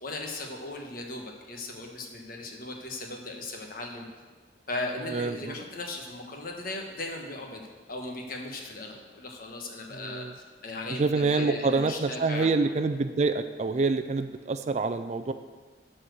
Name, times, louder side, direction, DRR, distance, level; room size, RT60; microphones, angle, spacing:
voice 1, 0.0-4.0 4.7-10.2 10.6-12.5, left 2 dB, 50° left, 2 dB, 1.2 m, -37 dB
voice 2, 5.1-5.6 9.9-10.3 10.9-15.3, right 3 dB, 35° right, 9 dB, 0.4 m, -27 dB
11.5 x 4.4 x 6.4 m, 1.4 s
head